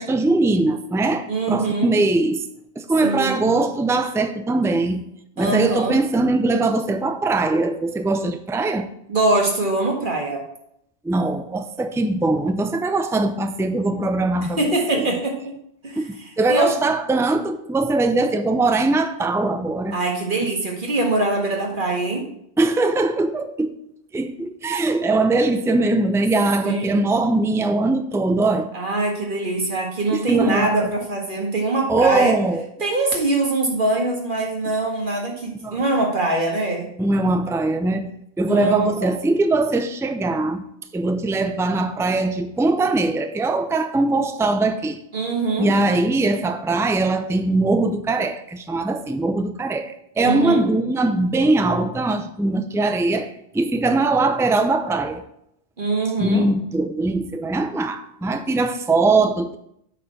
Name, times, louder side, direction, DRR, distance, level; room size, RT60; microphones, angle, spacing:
voice 1, 0.0-2.4 2.8-5.0 5.4-8.9 11.0-14.6 14.9-15.1 16.0-20.0 22.6-23.7 24.1-28.7 30.1-30.9 31.9-32.6 35.6-35.8 37.0-38.1 38.4-40.6 40.9-45.0 45.6-55.2 56.2-59.6, right 2 dB, 5° right, 0.4 m, -21 dB
voice 2, 1.3-1.9 3.0-3.5 5.4-6.0 9.1-10.4 14.6-15.6 15.8-16.0 16.5-16.7 19.9-22.3 26.6-27.0 28.7-32.4 32.8-36.9 38.5-39.1 45.1-45.7 50.2-50.6 55.8-56.5, right 2 dB, 50° right, 2.0 m, -23 dB
8.1 x 4.4 x 7.0 m
omnidirectional pair, 1.1 m